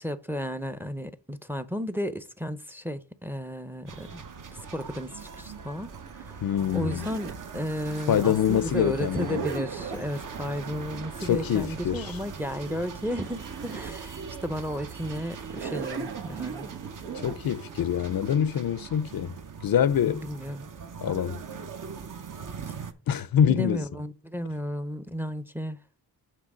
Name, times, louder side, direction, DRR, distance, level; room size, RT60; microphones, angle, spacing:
voice 1, 0.0-4.2 4.5-6.4 6.7-16.7 20.1-20.7 23.5-25.8, equal, 5° right, 0.6 m, -33 dB
sound 1, 3.9-22.9, right 5 dB, 50° right, 0.9 m, -41 dB
Zipper (clothing), 4.8-7.5 8.8-10.1 12.7-12.8 13.0-14.0 14.5-14.6 15.4-17.4, right 6 dB, 80° right, 1.3 m, -38 dB
voice 2, 6.4-7.1 8.1-9.4 11.3-12.1 17.1-20.3 21.0-21.4 23.1-23.8, left 9 dB, 60° left, 0.5 m, -25 dB
7.5 x 3.4 x 6.1 m
cardioid pair, 75°, 40 cm